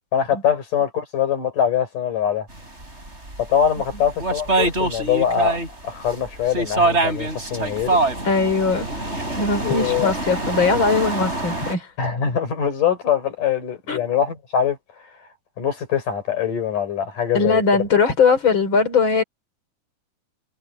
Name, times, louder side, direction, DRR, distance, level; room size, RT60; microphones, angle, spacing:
voice 1, 0.1-2.5 3.4-5.6 5.8-8.0 9.6-10.1 12.0-14.8 15.6-17.6, left 8 dB, 70° left, 6.5 m, -23 dB
sound 1, 2.8-5.7 6.1-11.7, right 2 dB, 20° right, 8.3 m, -24 dB
voice 2, 8.2-9.0 9.4-11.9 13.9-14.1 17.3-19.2, left 4 dB, 35° left, 4.0 m, -20 dB
omnidirectional pair, 3.8 m